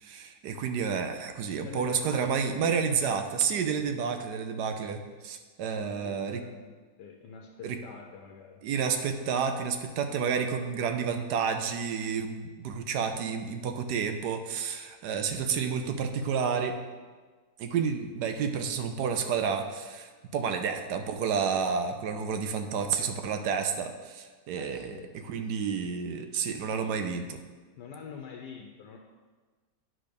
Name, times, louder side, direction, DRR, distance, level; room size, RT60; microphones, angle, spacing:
voice 1, 0.0-6.4 7.6-7.8 8.6-16.8 17.6-25.0 25.3-27.4, right 6 dB, 75° right, 6 dB, 1.2 m, -30 dB
voice 2, 1.6-2.6 5.8-8.6 15.5-15.8 24.6-25.1 27.8-29.0, left 6 dB, 75° left, 2 dB, 1.3 m, -45 dB
9.9 x 3.7 x 5.1 m, 1.4 s
omnidirectional pair, 1.9 m